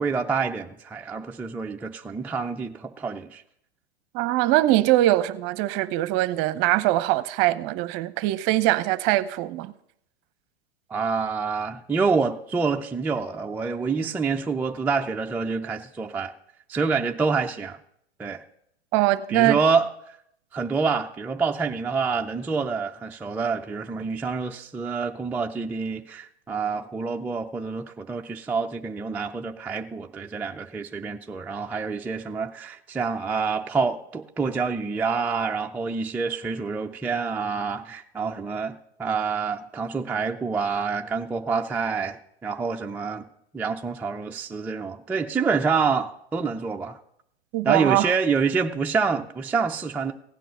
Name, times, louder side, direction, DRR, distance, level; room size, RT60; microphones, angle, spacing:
voice 1, 0.0-3.4 10.9-16.3 16.7-17.8 18.2-18.4 19.3-19.9 20.5-43.3 43.5-47.0 47.7-50.1, right 5 dB, 5° right, 0.4 m, -27 dB
voice 2, 4.1-9.7 18.9-19.6 47.5-48.1, right 16 dB, 40° right, 0.8 m, -22 dB
16.0 x 9.1 x 5.6 m
hypercardioid pair, 105°, 32 cm